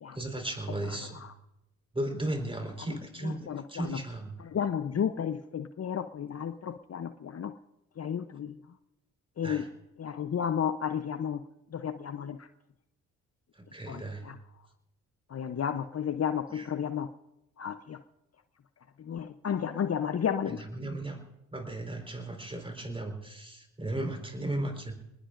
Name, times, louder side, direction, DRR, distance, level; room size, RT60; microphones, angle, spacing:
voice 1, 0.1-1.2 1.9-4.4 9.4-9.7 13.5-14.3 16.5-16.7 20.5-21.2 21.5-25.0, right 1 dB, 15° right, 4 dB, 4.4 m, -36 dB
voice 2, 3.2-4.0 4.4-7.5 8.0-8.6 9.4-9.6 10.0-11.4 11.7-12.5 13.9-14.4 15.3-17.1 17.6-18.0 19.0-20.6, left 8 dB, 40° left, 11 dB, 0.8 m, -32 dB
28.0 x 20.0 x 2.6 m, 0.90 s
hypercardioid pair, 40°, 38 cm